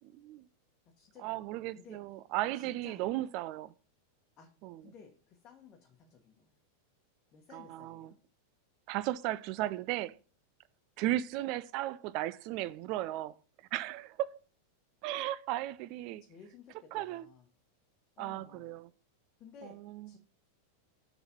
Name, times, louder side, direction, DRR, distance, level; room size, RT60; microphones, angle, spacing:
voice 1, 0.1-0.5 1.2-3.7 4.6-4.8 7.5-8.1 8.9-10.2 11.0-13.3 13.7-14.3 15.0-16.2 16.9-17.3 18.2-18.9 19.6-20.1, right 15 dB, 45° right, 0.4 m, -35 dB
voice 2, 0.8-1.4 1.7-2.0 2.5-3.1 4.4-4.5 4.8-6.6 7.3-8.2 16.2-17.5 18.2-18.7 19.4-19.8 20.1-20.2, left 6 dB, 30° left, 1.2 m, -56 dB
6.8 x 4.0 x 5.7 m
figure-of-eight pair, 90°, 0 cm